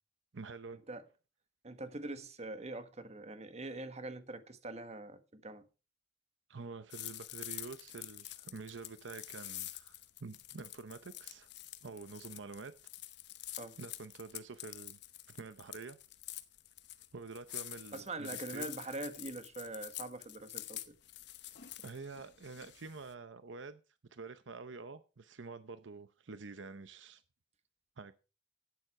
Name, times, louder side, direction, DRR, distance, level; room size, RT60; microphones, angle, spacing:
voice 1, 0.3-0.8 6.5-9.9 10.2-11.5 11.8-12.7 13.8-15.0 15.3-16.0 17.1-18.7 21.8-23.8 24.1-27.2 28.0-28.1, right 4 dB, 75° right, 0.7 m, -47 dB
voice 2, 1.6-5.7 13.6-13.8 17.9-20.9, right 2 dB, 35° right, 1.3 m, -43 dB
sound 1, 6.9-23.1, left 15 dB, 65° left, 0.9 m, -47 dB
12.0 x 9.3 x 4.8 m
head